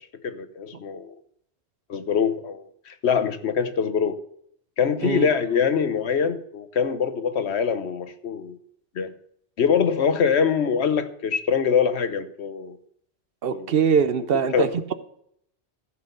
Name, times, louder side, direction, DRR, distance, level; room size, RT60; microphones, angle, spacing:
voice 1, 0.2-1.1 1.9-4.2 4.8-8.6 9.0-9.1 9.6-12.8 13.5-13.7 14.5-14.7, left 6 dB, 75° left, 11 dB, 1.2 m, -24 dB
voice 2, 13.4-14.9, right 6 dB, 60° right, 13 dB, 0.9 m, -22 dB
15.0 x 6.0 x 6.8 m, 0.69 s
omnidirectional pair, 1.1 m